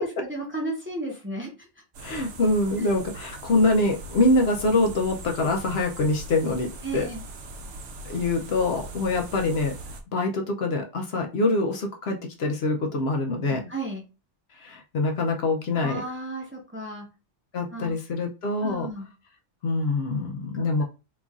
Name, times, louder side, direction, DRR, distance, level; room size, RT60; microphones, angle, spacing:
voice 1, 0.0-1.7 2.8-2.9 6.8-7.2 13.7-14.0 15.8-17.1 17.7-18.0 18.6-19.1 20.5-20.8, right 1 dB, 10° right, 0 dB, 0.7 m, -34 dB
sound 1, 1.9-10.0, right 2 dB, 65° right, 0.8 m, -40 dB
voice 2, 2.0-7.1 8.0-9.8 10.1-13.7 14.5-16.0 17.5-18.9 19.6-20.8, left 2 dB, 65° left, 3 dB, 0.8 m, -25 dB
3.0 x 2.5 x 3.6 m, 0.29 s
omnidirectional pair, 1.2 m